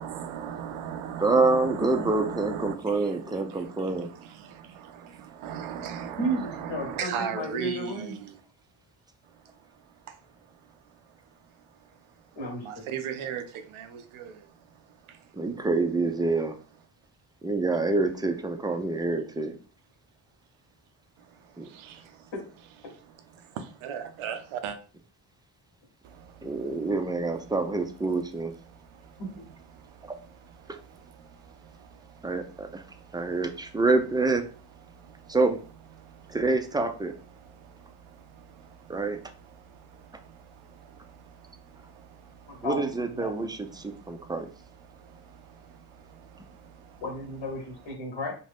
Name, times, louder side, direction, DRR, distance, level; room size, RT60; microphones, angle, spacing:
voice 1, 0.0-8.4 12.6-14.5 15.1-15.2 21.3-22.3 22.8-24.8 26.0-26.9 28.7-32.3 32.6-33.3 34.9-35.4 36.0-36.4 37.4-42.7 43.7-44.4 44.8-47.0, right 8 dB, 85° right, 0.6 m, -40 dB
voice 2, 1.2-4.1 15.3-16.5 17.4-19.5 21.6-21.7 26.4-28.5 30.0-30.1 32.2-32.8 33.1-34.5 35.3-35.6 36.3-37.1 38.9-39.2 42.6-44.5, right 3 dB, 10° right, 0.3 m, -26 dB
voice 3, 6.2-8.1 12.4-12.6 42.5-43.3 47.0-48.3, right 1 dB, 70° left, 1.0 m, -33 dB
2.6 x 2.2 x 3.3 m
cardioid pair, 60°, 48 cm